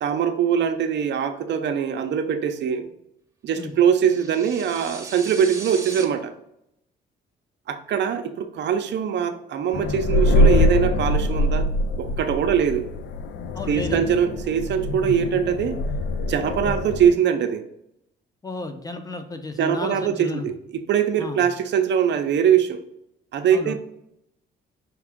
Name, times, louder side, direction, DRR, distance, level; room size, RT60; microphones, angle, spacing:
voice 1, 0.0-2.9 3.4-6.3 7.7-11.7 12.0-12.8 13.7-15.8 16.2-17.6 19.6-22.8 23.3-23.7, right 8 dB, 60° right, 7 dB, 0.6 m, -22 dB
sound 1, 3.9-6.0, right 3 dB, 15° right, 0.9 m, -38 dB
sound 2, 9.7-17.1, left 1 dB, 65° left, 0.4 m, -23 dB
voice 2, 13.5-14.2 16.6-16.8 18.4-20.5 21.2-21.5 23.5-23.7, left 3 dB, 20° left, 7 dB, 0.7 m, -33 dB
5.8 x 2.4 x 3.5 m, 0.80 s
cardioid pair, 90°, 20 cm